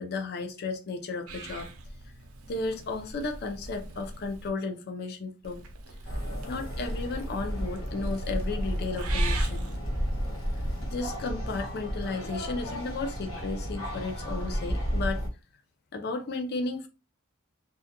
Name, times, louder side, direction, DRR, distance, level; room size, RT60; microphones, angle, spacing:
voice 1, 0.0-1.7 2.5-5.6 6.5-9.7 10.8-15.2 15.9-16.9, left 3 dB, 50° left, 0.5 m, -34 dB
Purr / Meow, 1.3-4.5 5.4-11.1, right 3 dB, 85° right, 0.5 m, -43 dB
sound 1, 6.0-15.3, equal, 70° left, 1.1 m, -32 dB
2.3 x 2.2 x 2.8 m
head